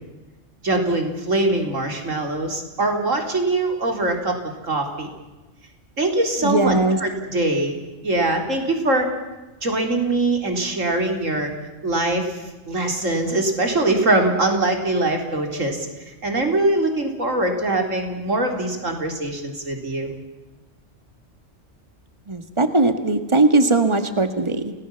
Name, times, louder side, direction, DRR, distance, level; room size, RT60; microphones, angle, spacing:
voice 1, 0.6-5.1 6.0-7.8 8.0-9.1 9.6-11.5 11.8-20.1, right 2 dB, 90° right, 4 dB, 4.1 m, -22 dB
voice 2, 6.4-7.0 22.3-24.7, right 2 dB, 25° right, 8 dB, 1.9 m, -19 dB
29.5 x 19.0 x 7.1 m, 1.1 s
omnidirectional pair, 1.3 m